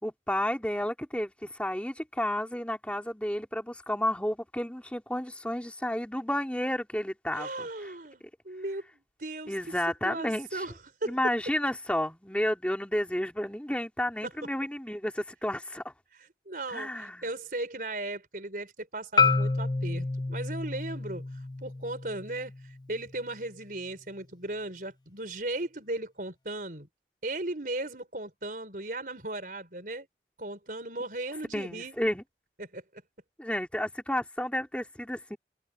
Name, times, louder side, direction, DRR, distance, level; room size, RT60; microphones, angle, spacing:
voice 1, 0.0-7.9 9.5-10.6 11.1-15.8 16.7-17.2 31.5-32.2 33.4-35.4, left 1 dB, 5° left, 2.6 m, -31 dB
voice 2, 7.3-8.8 9.2-9.8 10.0-10.7 11.0-11.2 14.2-14.3 16.1-21.2 21.6-26.9 27.2-30.1 30.4-32.0 32.6-32.8, right 2 dB, 50° right, 5.0 m, -37 dB
Marimba xylophone, 19.2-23.3, left 4 dB, 25° left, 0.7 m, -29 dB
head